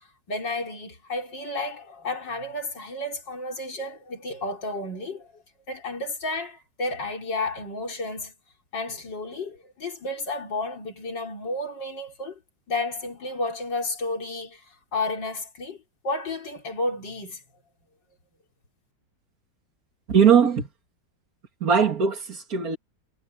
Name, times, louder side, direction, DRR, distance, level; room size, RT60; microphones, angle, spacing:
voice 1, 0.0-8.3 8.7-12.4 12.7-17.4, left 2 dB, 75° left, 4.9 m, -32 dB
voice 2, 20.1-20.7 21.6-22.8, right 7 dB, 50° right, 2.7 m, -20 dB
omnidirectional pair, 2.0 m